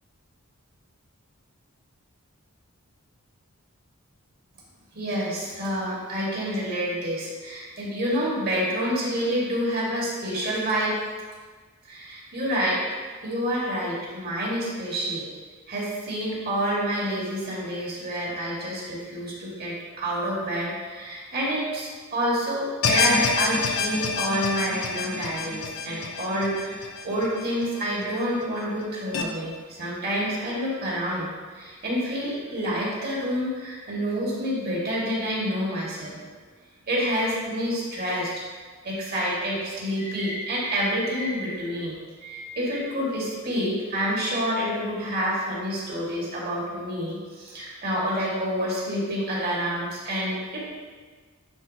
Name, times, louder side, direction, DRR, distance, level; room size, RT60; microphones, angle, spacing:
voice 1, 4.9-10.9 11.9-12.8 13.2-15.3 15.7-31.3 31.5-36.2 36.9-38.4 38.8-50.6, equal, 45° right, -5 dB, 1.8 m, -28 dB
sound 1, 22.8-28.1 28.4-28.5 29.1-29.2, left 4 dB, 60° left, 0.6 m, -27 dB
9.5 x 4.0 x 2.8 m, 1.5 s
head